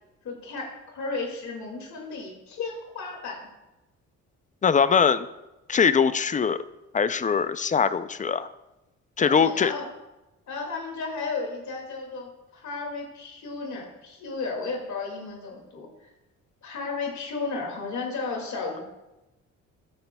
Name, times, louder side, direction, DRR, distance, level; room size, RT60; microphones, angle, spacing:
voice 1, 0.2-3.5 9.2-9.9 10.5-16.1 16.6-18.8, left 4 dB, 65° left, 0 dB, 2.3 m, -34 dB
voice 2, 4.6-5.3 5.7-6.6 6.9-8.5 9.2-9.7, left 6 dB, 25° left, 13 dB, 0.4 m, -22 dB
13.0 x 9.5 x 2.3 m, 0.99 s
cardioid pair, 90°, 30 cm